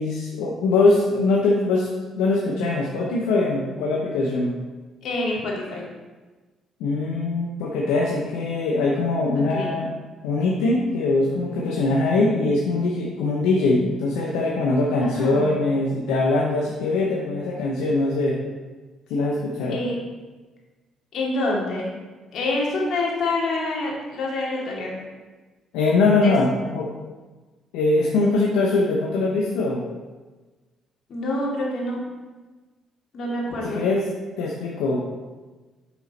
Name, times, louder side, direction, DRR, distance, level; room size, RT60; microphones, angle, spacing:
voice 1, 0.0-1.9 2.1-4.5 6.8-9.9 10.2-18.4 19.1-19.8 25.7-26.9 27.7-29.8 33.6-34.0 34.4-35.0, left 2 dB, 85° left, -3 dB, 0.8 m, -22 dB
voice 2, 5.0-5.8 9.4-9.7 15.0-15.5 19.7-20.0 21.1-21.9 22.3-25.0 26.2-26.4 31.1-32.0 33.1-33.8, left 2 dB, 65° left, -3 dB, 2.3 m, -26 dB
6.9 x 6.0 x 4.2 m, 1.3 s
supercardioid pair, 60°, 0 cm